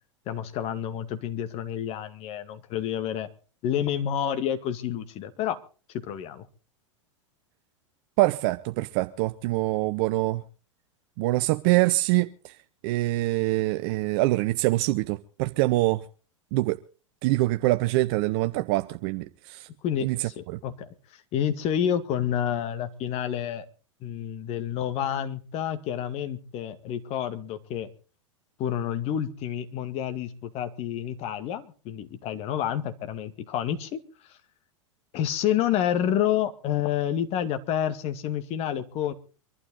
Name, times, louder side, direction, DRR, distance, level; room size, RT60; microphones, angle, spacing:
voice 1, 0.3-3.3 3.6-5.6 5.9-6.5 19.8-20.9 21.3-23.7 24.0-27.9 28.6-34.0 35.1-39.1, left 10 dB, 40° left, 2.1 m, -29 dB
voice 2, 8.2-10.4 11.2-12.6 12.8-16.0 16.5-16.8 17.2-19.7 20.0-20.6, right 19 dB, 45° right, 0.7 m, -25 dB
24.5 x 12.0 x 4.0 m
figure-of-eight pair, 90°, 16 cm